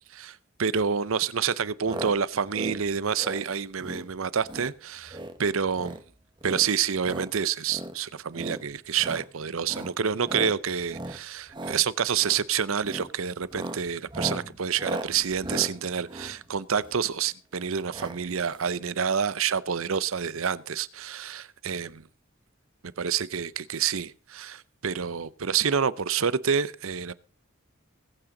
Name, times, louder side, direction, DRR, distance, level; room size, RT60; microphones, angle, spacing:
voice 1, 0.1-6.0 6.4-22.0 23.0-27.1, right 7 dB, 70° right, 0.7 m, -28 dB
sound 1, 1.8-2.1 2.4-2.8 3.1-3.4 3.8-4.1 4.4-4.7 5.0-5.4 5.7-6.0 6.4-7.3 7.7-7.9 8.3-8.6 9.0-9.3 9.6-9.9 10.2-10.5 10.9-11.2 11.5-11.8 12.2-12.4 12.8-13.1 13.4-17.1 17.9-18.2 18.5-18.6 18.7-18.8, right 1 dB, 20° right, 1.2 m, -36 dB
20.5 x 8.8 x 3.8 m
head